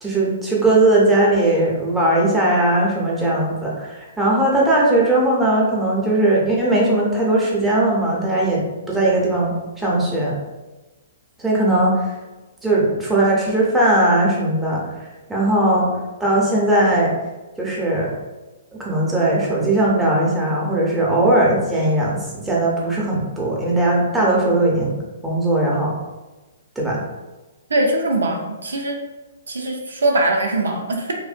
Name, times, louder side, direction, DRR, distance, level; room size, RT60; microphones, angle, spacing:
voice 1, 0.0-10.4 11.4-12.1 12.6-14.8 15.3-15.9 16.2-17.1 17.6-18.1 18.8-25.0 25.2-25.9 26.8-27.0, right 1 dB, 5° right, -4 dB, 0.6 m, -18 dB
voice 2, 27.7-29.0 29.5-31.1, right 2 dB, 80° right, 1 dB, 0.4 m, -21 dB
2.6 x 2.1 x 2.4 m, 1.2 s
hypercardioid pair, 125°, 0 cm